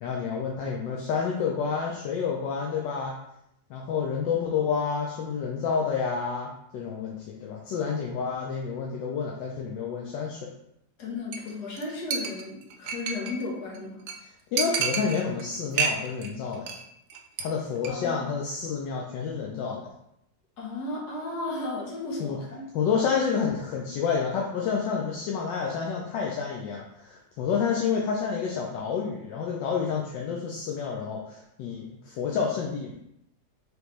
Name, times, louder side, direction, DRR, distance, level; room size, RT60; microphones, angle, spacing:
voice 1, 0.0-3.2 3.7-10.5 14.5-16.7 17.4-19.9 22.2-22.4 22.7-32.9, left 6 dB, 80° left, -1 dB, 1.3 m, -29 dB
voice 2, 11.0-14.0 17.9-18.2 20.6-22.6, left 2 dB, 60° left, -3 dB, 1.6 m, -34 dB
Chink clink, 11.3-11.5 11.8-11.9 12.1-13.4 13.7-13.8 14.1-14.2 14.6-15.4 15.7-16.3 16.5-16.8 17.1-17.4 17.7-17.9, right 6 dB, 80° right, 0.7 m, -29 dB
5.0 x 3.2 x 3.1 m, 0.80 s
omnidirectional pair, 2.0 m